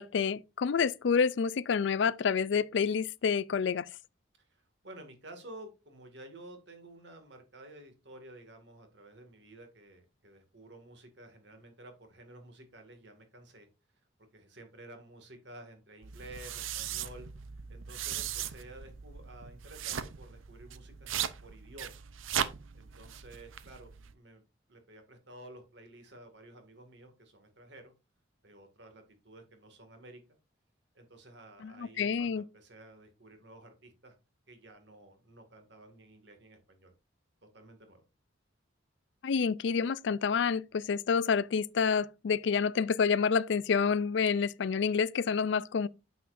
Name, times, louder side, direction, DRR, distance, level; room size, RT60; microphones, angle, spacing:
voice 1, 0.0-3.9 31.6-32.4 39.2-45.9, left 6 dB, 65° left, 0.4 m, -28 dB
voice 2, 4.4-13.7 14.3-17.3 17.7-22.0 22.7-24.4 24.7-27.9 28.4-30.2 30.9-34.1 34.5-36.9 37.4-38.0, right 1 dB, 60° right, 2.1 m, -52 dB
sound 1, 16.0-24.1, right 9 dB, 85° right, 0.7 m, -38 dB
9.3 x 7.2 x 2.6 m
head